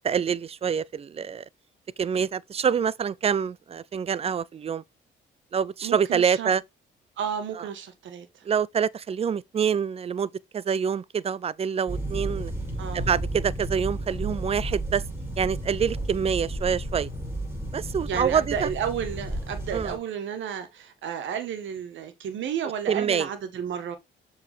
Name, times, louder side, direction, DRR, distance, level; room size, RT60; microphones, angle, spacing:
voice 1, 0.0-1.4 2.0-4.8 5.5-6.6 8.5-12.5 12.9-15.0 15.4-17.1 17.7-18.7 19.7-20.0 22.9-23.3, right 7 dB, 30° right, 0.4 m, -26 dB
voice 2, 5.8-6.5 7.2-8.5 12.8-13.1 18.0-24.0, right 8 dB, 70° right, 1.4 m, -32 dB
sound 1, 11.9-20.0, right 1 dB, 10° right, 5.0 m, -32 dB
7.1 x 4.7 x 3.4 m
cardioid pair, 90°, 20 cm